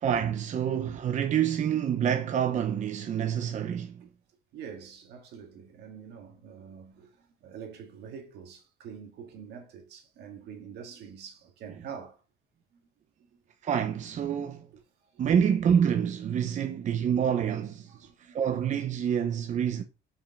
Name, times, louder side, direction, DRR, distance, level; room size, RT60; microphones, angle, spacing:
voice 1, 0.0-4.0 13.6-14.7 15.2-18.1 18.3-19.8, right 8 dB, 45° right, 0.8 m, -27 dB
voice 2, 4.5-12.2 15.1-15.2 17.0-17.1 17.9-18.4, right 7 dB, 80° right, 1.9 m, -45 dB
5.6 x 5.4 x 4.1 m
cardioid pair, 110°, 17 cm